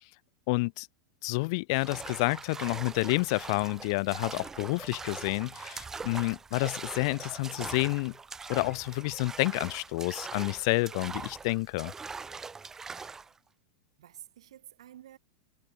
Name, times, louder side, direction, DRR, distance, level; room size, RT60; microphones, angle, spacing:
voice 1, 0.5-0.9 1.2-8.1 8.5-11.9, left 26 dB, 60° left, 0.3 m, -29 dB
sound 1, 1.8-13.3, right 4 dB, 15° right, 2.0 m, -42 dB
voice 2, 14.0-15.2, right 12 dB, 85° right, 4.6 m, -51 dB
supercardioid pair, 125°, 3 cm